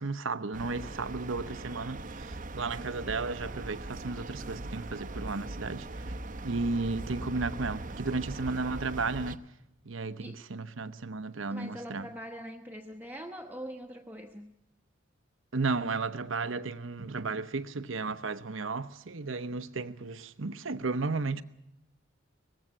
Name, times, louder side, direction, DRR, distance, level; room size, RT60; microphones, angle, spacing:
voice 1, 0.0-6.1 6.4-9.4 9.8-12.1 15.5-21.4, right 3 dB, 85° right, 0.9 m, -34 dB
sound 1, 0.5-9.4, right 2 dB, 40° right, 0.8 m, -40 dB
voice 2, 11.5-14.5, equal, 10° right, 1.0 m, -43 dB
19.5 x 15.5 x 9.8 m
head